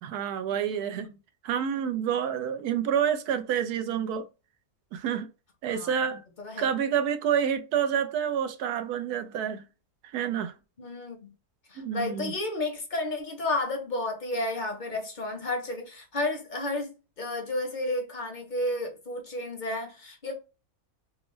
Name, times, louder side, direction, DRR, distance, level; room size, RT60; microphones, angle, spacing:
voice 1, 0.0-1.1 1.4-4.3 4.9-5.3 5.6-6.2 6.6-9.6 10.0-10.5 11.8-12.3, right 8 dB, 85° right, 1.1 m, -28 dB
voice 2, 6.4-6.7 10.8-11.3 11.7-20.3, left 2 dB, 40° left, 0.7 m, -32 dB
3.5 x 2.0 x 3.0 m
omnidirectional pair, 1.6 m